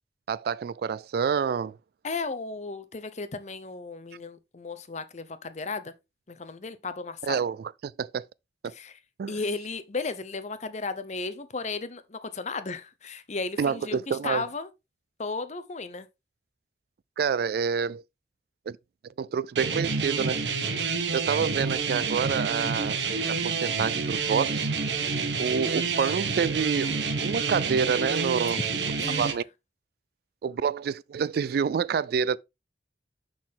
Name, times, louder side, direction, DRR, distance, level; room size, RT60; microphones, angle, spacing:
voice 1, 0.3-1.8 7.3-7.6 7.8-8.3 8.6-8.7 9.2-9.3 13.6-14.4 17.2-18.0 18.7-18.8 19.2-20.4 21.1-23.0 23.3-24.7 25.4-26.9 27.2-28.6 29.2-29.4 30.4-32.4, right 6 dB, 60° right, 0.3 m, -27 dB
voice 2, 2.0-5.9 6.3-7.4 8.7-9.0 9.3-14.7 15.2-16.1 28.5-28.6 29.0-29.4, left 4 dB, 40° left, 0.8 m, -35 dB
sound 1, 19.6-29.3, right 5 dB, 85° right, 1.3 m, -28 dB
6.4 x 6.1 x 3.7 m
head